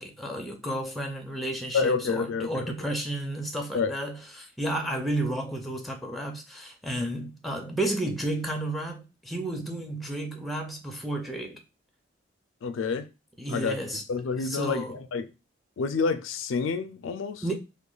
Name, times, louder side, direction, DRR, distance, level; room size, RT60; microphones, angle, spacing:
voice 1, 0.0-11.6 13.4-14.0 14.4-15.0 17.4-17.5, right 1 dB, ahead, 0.5 m, -32 dB
voice 2, 1.7-2.9 3.7-3.9 12.6-13.1 13.5-13.8 14.1-15.3 15.8-17.5, left 5 dB, 75° left, 0.4 m, -28 dB
2.9 x 2.2 x 3.8 m
head